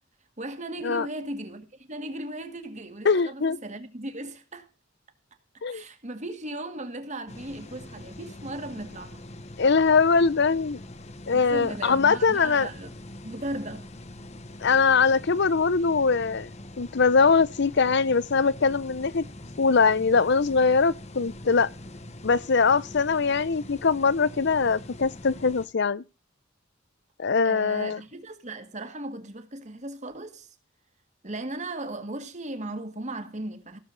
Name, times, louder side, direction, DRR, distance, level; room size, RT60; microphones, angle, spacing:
voice 1, 0.4-4.7 5.7-9.2 11.3-12.9 13.2-13.9 27.4-30.6 31.2-33.8, right 1 dB, 35° right, 1.8 m, -37 dB
voice 2, 3.0-3.6 5.6-5.8 9.6-10.8 11.3-12.7 14.6-16.5 16.8-19.2 19.6-21.7 22.2-26.0 27.2-28.0, left 5 dB, 60° left, 0.7 m, -22 dB
sound 1, 7.3-25.7, left 1 dB, 35° left, 1.1 m, -43 dB
17.0 x 7.3 x 4.0 m
head